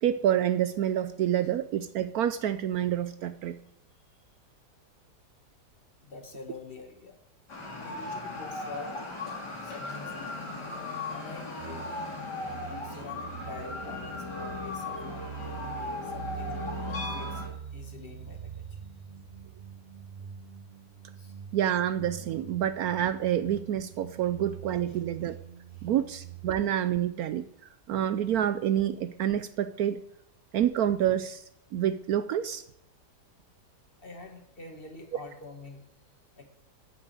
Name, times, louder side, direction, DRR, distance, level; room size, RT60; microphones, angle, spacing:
voice 1, 0.0-3.6 21.5-25.4 25.8-27.5 27.9-30.0 30.5-31.4 31.7-32.6, right 10 dB, 70° right, 12 dB, 1.0 m, -28 dB
voice 2, 6.0-7.2 7.8-10.4 11.1-11.9 12.8-15.3 16.0-17.4 17.7-18.8 21.1-21.4 24.8-25.0 25.7-25.9 34.0-35.8 36.4-36.5, left 3 dB, 35° left, 4 dB, 1.7 m, -46 dB
sound 1, 7.5-17.5, left 3 dB, 75° left, 3.7 m, -37 dB
sound 2, 11.6-26.7, right 9 dB, 90° right, 0.4 m, -44 dB
9.2 x 7.2 x 8.1 m, 0.72 s
omnidirectional pair, 1.8 m